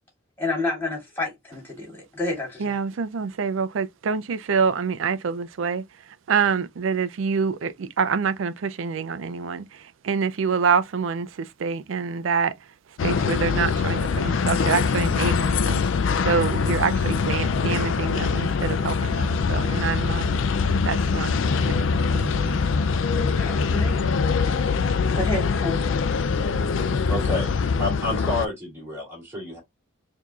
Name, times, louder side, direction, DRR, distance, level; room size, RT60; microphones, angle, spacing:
voice 1, 0.4-2.7 23.3-24.1 25.1-25.8, left 2 dB, 10° left, 2.4 m, -29 dB
voice 2, 2.6-5.8 6.3-12.5 13.0-15.8 16.2-20.3 20.8-21.3 21.6-22.6, right 6 dB, 75° right, 0.4 m, -26 dB
sound 1, 13.0-28.5, left 5 dB, 70° left, 0.4 m, -23 dB
voice 3, 27.1-27.5 27.8-29.6, left 2 dB, 15° right, 2.3 m, -29 dB
4.6 x 2.7 x 2.4 m
head